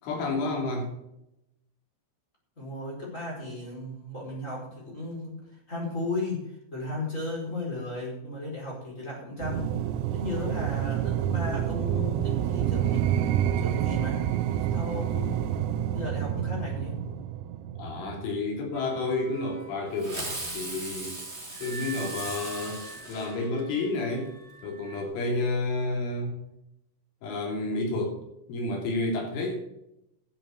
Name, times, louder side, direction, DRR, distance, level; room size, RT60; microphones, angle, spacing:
voice 1, 0.0-0.9 17.8-21.2 21.6-24.3 24.6-26.4 27.2-28.2 28.5-29.7, left 2 dB, 75° left, 0 dB, 5.6 m, -30 dB
voice 2, 2.6-9.7 10.1-13.3 13.6-14.2 14.7-15.5 15.9-17.0, left 2 dB, 15° left, -3 dB, 4.8 m, -35 dB
sound 1, 9.4-18.5, right 10 dB, 80° right, 2.9 m, -28 dB
sound 2, 18.7-25.0, right 3 dB, 40° right, 0.6 m, -46 dB
Fireworks, 20.0-23.9, right 2 dB, 20° right, 1.9 m, -38 dB
12.0 x 7.8 x 7.0 m, 0.83 s
omnidirectional pair, 5.6 m